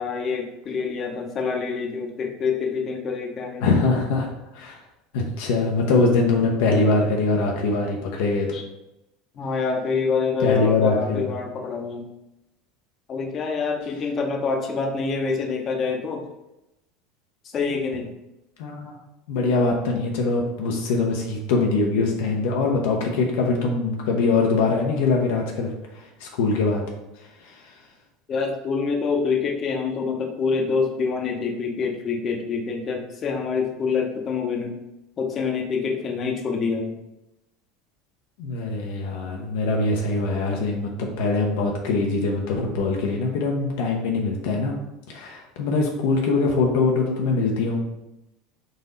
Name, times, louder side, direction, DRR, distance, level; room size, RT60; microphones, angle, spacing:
voice 1, 0.0-3.7 8.5-8.7 9.4-12.1 13.1-16.2 17.5-18.1 28.3-34.8 35.2-36.9, left 5 dB, 40° left, 2 dB, 0.8 m, -26 dB
voice 2, 3.6-4.3 4.5-4.8 5.1-8.5 10.4-11.3 18.6-19.0 19.3-26.8 27.4-27.5 38.4-44.7 45.1-47.8, left 3 dB, 75° left, 0 dB, 0.6 m, -23 dB
4.0 x 2.6 x 3.9 m, 0.93 s
hypercardioid pair, 85°, 0 cm